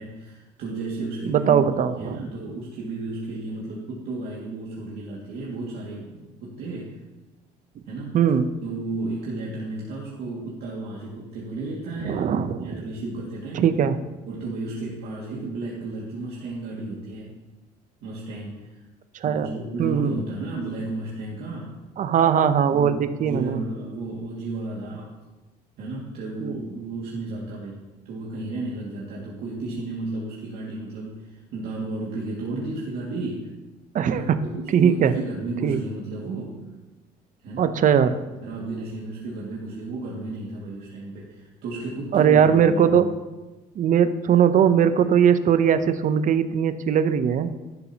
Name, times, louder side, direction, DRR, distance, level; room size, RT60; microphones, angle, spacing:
voice 1, 0.0-1.5 1.8-7.0 7.9-8.2 8.6-12.2 12.6-13.8 14.3-17.4 18.0-18.9 19.2-21.7 22.7-25.2 25.8-33.5 34.0-36.6 37.4-37.8 38.4-43.1, right 2 dB, 70° right, -5 dB, 2.2 m, -33 dB
voice 2, 1.2-2.2 8.1-8.5 12.1-12.8 13.5-14.0 19.2-19.5 19.8-20.2 22.0-23.6 26.4-26.5 33.9-34.2 34.7-35.1 35.6-35.8 37.6-38.2 42.1-43.1 43.8-47.5, right 8 dB, 50° right, 11 dB, 0.7 m, -20 dB
12.0 x 11.0 x 2.9 m, 1.1 s
cardioid pair, 110°, 17 cm